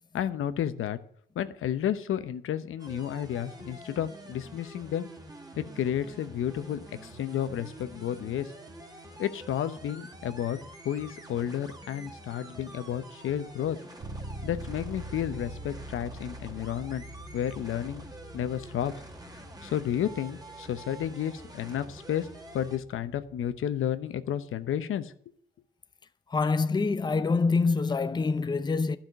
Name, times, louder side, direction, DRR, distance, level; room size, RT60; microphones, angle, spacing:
voice 1, 0.1-1.0 1.3-5.1 5.6-8.5 9.2-10.6 10.8-13.8 14.4-17.0 17.3-18.1 18.3-18.9 19.6-22.3 22.5-25.3, left 10 dB, 85° left, 0.9 m, -31 dB
sound 1, 2.8-22.8, right 1 dB, 20° right, 1.8 m, -47 dB
Bass guitar, 14.0-23.7, right 1 dB, 70° right, 2.4 m, -45 dB
voice 2, 26.3-29.0, left 4 dB, 20° left, 0.6 m, -25 dB
12.0 x 5.8 x 9.1 m
cardioid pair, 105°, 21 cm